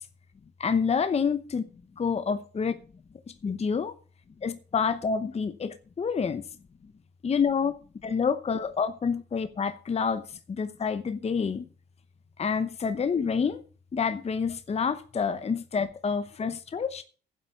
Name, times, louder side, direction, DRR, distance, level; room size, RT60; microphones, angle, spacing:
voice 1, 0.6-1.6 2.0-2.7 3.4-3.9 4.4-6.4 7.2-7.7 8.0-10.2 10.5-11.7 12.4-13.6 13.9-17.0, left 6 dB, 30° left, 0.8 m, -28 dB
10.5 x 7.8 x 6.8 m
cardioid pair, 90°, 20 cm